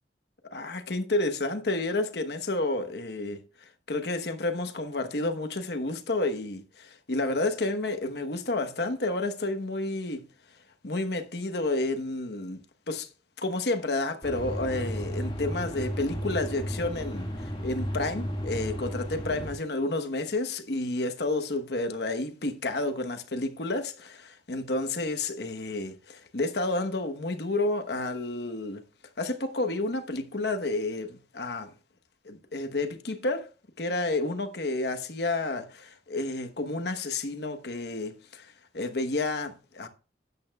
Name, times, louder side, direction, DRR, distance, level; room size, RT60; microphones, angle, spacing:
voice 1, 0.4-3.4 3.9-10.2 10.8-12.6 12.9-13.1 13.4-28.8 29.2-31.7 32.2-33.5 33.8-38.5 38.7-39.9, left 2 dB, 70° left, 1.1 m, -30 dB
sound 1, 14.2-19.5, equal, 25° left, 1.8 m, -34 dB
12.0 x 8.9 x 2.3 m
head